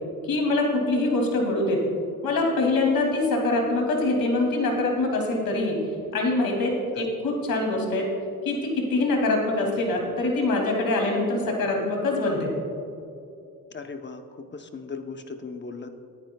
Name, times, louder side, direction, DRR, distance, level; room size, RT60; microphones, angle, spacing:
voice 1, 0.3-1.8 2.2-5.8 6.1-8.1 8.4-12.5, left 2 dB, 80° left, 0 dB, 2.7 m, -24 dB
voice 2, 13.7-16.1, left 4 dB, 30° left, 6 dB, 0.8 m, -38 dB
19.5 x 9.6 x 2.3 m, 2.6 s
cardioid pair, 100°, 34 cm